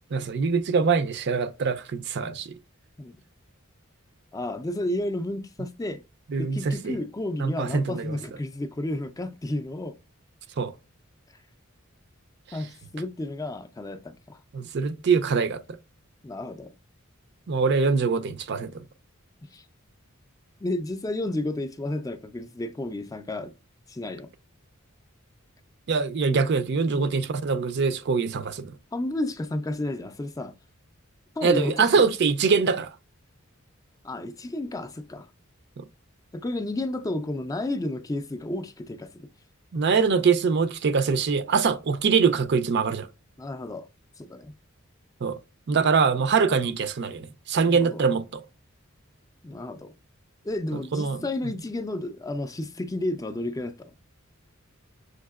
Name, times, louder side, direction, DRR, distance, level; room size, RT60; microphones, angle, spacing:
voice 1, 0.1-2.5 6.3-6.9 7.4-8.2 10.6-10.7 14.5-15.6 17.5-18.8 25.9-28.7 31.4-32.9 35.8-35.9 39.7-43.1 45.2-45.4 45.7-48.4 50.7-51.3, right 5 dB, 55° right, 0.4 m, -23 dB
voice 2, 4.3-6.0 6.4-10.0 12.5-14.4 16.2-16.7 19.4-19.6 20.6-23.5 23.9-24.3 28.9-30.5 31.4-32.0 34.0-35.3 36.3-39.3 43.4-43.9 44.2-44.5 47.5-48.0 49.4-49.9 50.4-53.9, left 1 dB, 15° left, 0.4 m, -32 dB
6.4 x 2.8 x 2.3 m
head